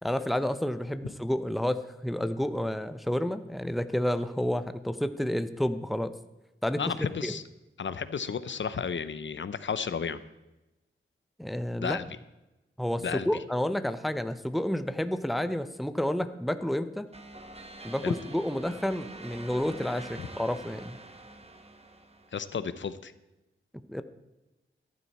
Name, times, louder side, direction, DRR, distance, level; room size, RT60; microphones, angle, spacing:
voice 1, 0.0-6.1 6.6-6.9 7.2-7.3 11.4-12.0 12.8-17.1 17.8-21.0 23.9-24.0, left 1 dB, ahead, 11 dB, 0.7 m, -30 dB
voice 2, 6.8-7.4 7.8-10.2 11.8-12.1 13.0-13.3 18.0-18.1 22.3-23.1, left 6 dB, 60° left, 14 dB, 0.7 m, -32 dB
sound 1, 17.1-22.6, right 2 dB, 30° right, 1.4 m, -46 dB
14.0 x 11.5 x 4.2 m, 1.0 s
wide cardioid pair, 100°, 21 cm